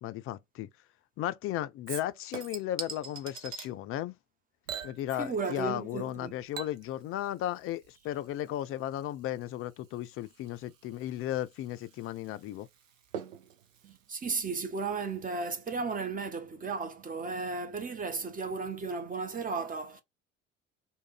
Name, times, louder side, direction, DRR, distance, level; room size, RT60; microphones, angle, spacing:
voice 1, 0.0-0.7 1.2-4.2 4.8-12.7, left 13 dB, 35° left, 0.4 m, -35 dB
Chink clink / Liquid, 1.9-3.7 4.7-5.8 6.1-15.1 15.4-15.5, right 7 dB, 80° right, 0.6 m, -45 dB
voice 2, 5.2-6.4 13.8-20.0, right 4 dB, 20° right, 0.8 m, -34 dB
3.1 x 2.2 x 3.5 m
figure-of-eight pair, 55°, 38 cm